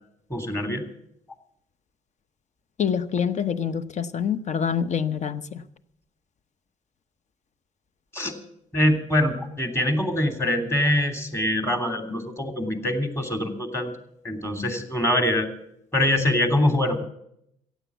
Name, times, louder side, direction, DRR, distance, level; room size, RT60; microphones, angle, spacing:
voice 1, 0.3-0.8 8.1-8.3 8.7-13.9 14.2-15.5 15.9-17.0, left 1 dB, 15° left, 5 dB, 3.0 m, -24 dB
voice 2, 2.8-5.6, left 7 dB, 40° left, 15 dB, 0.9 m, -26 dB
16.0 x 8.3 x 8.2 m, 0.75 s
hypercardioid pair, 50°, 18 cm